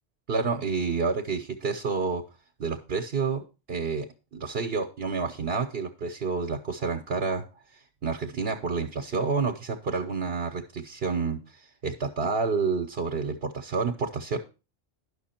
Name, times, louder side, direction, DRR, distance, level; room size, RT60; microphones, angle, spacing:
voice 1, 0.3-2.2 2.6-4.1 4.3-7.4 8.0-11.4 11.8-14.4, right 4 dB, 60° right, 5 dB, 1.1 m, -29 dB
11.5 x 6.0 x 4.3 m, 0.31 s
omnidirectional pair, 1.2 m